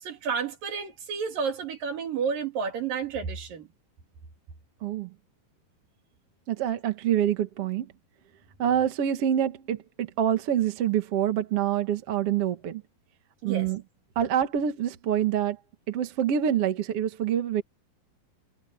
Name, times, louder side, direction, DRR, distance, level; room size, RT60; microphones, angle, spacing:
voice 1, 0.0-3.7 13.4-13.7, right 6 dB, 70° right, 4.6 m, -31 dB
voice 2, 4.8-5.1 6.5-7.9 8.6-12.8 13.4-13.8 14.2-15.6 15.9-17.6, right 10 dB, 50° right, 2.1 m, -26 dB
omnidirectional pair, 4.2 m